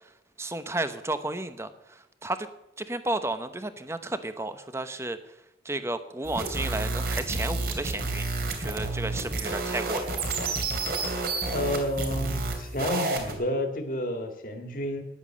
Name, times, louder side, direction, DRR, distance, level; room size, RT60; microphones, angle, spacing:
voice 1, 0.4-2.5 2.8-5.2 5.6-10.3, right 2 dB, 15° right, 10 dB, 0.9 m, -33 dB
sound 1, 6.2-13.3, right 3 dB, 55° right, 2.9 m, -30 dB
voice 2, 11.5-15.0, left 1 dB, 50° left, 5 dB, 2.0 m, -30 dB
13.5 x 10.5 x 7.4 m, 0.90 s
head